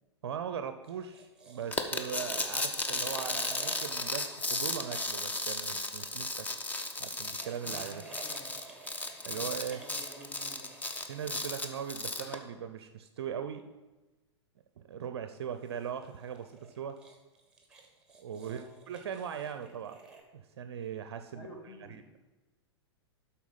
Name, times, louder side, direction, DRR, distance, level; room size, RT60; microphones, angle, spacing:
voice 1, 0.2-6.5 7.0-8.0 9.3-9.8 11.1-13.7 14.8-17.0 18.2-20.0 20.3-21.5 21.9-22.0, right 8 dB, 60° right, 9 dB, 0.5 m, -39 dB
sound 1, 0.8-6.0 7.0-12.2 15.4-20.2, right 4 dB, 5° right, 1.5 m, -53 dB
sound 2, 1.7-12.4, left 2 dB, 10° left, 0.7 m, -35 dB
voice 2, 7.6-8.5 9.3-10.9 18.4-18.7 21.3-22.1, equal, 30° left, -3 dB, 2.5 m, -51 dB
12.0 x 4.4 x 5.4 m, 1.2 s
figure-of-eight pair, 105°, 15 cm